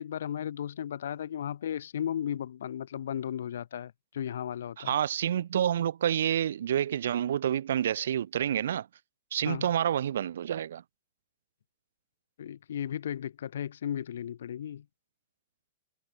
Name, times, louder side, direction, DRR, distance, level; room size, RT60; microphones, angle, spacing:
voice 1, 0.0-4.9 9.4-9.7 12.4-14.9, left 9 dB, 80° left, 3.9 m, -35 dB
voice 2, 4.8-8.9 9.3-10.8, right 10 dB, 80° right, 2.2 m, -28 dB
hypercardioid pair, 145°, 0 cm